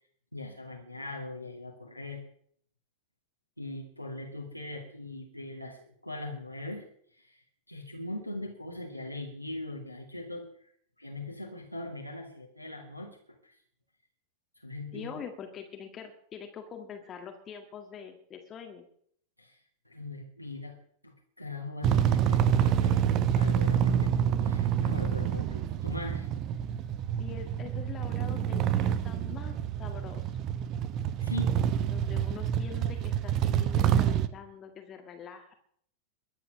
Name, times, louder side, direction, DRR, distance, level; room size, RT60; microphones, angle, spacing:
voice 1, 0.3-2.2 3.6-10.5 11.0-13.1 13.4-13.6 14.6-15.2 19.4-19.6 19.9-20.8 21.0-26.3 31.2-31.5, left 2 dB, 90° left, -1 dB, 2.4 m, -40 dB
voice 2, 14.9-18.9 27.2-30.4 31.9-35.5, left 7 dB, 25° left, 4 dB, 1.8 m, -44 dB
sound 1, 21.8-34.3, right 9 dB, 35° right, 1.0 m, -27 dB
22.0 x 8.5 x 6.3 m, 0.64 s
figure-of-eight pair, 90°, 0 cm